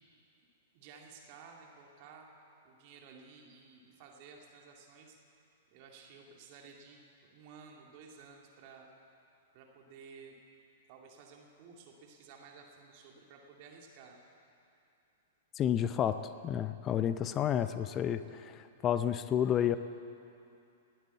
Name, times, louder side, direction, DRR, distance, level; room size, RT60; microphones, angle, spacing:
voice 1, 0.7-2.3 2.6-5.2 5.7-8.9 9.5-10.4 10.9-14.2, right 5 dB, 45° right, 1 dB, 2.2 m, -54 dB
voice 2, 15.6-19.8, left 9 dB, 30° left, 12 dB, 0.6 m, -31 dB
19.0 x 9.2 x 8.3 m, 2.7 s
figure-of-eight pair, 105°, 0 cm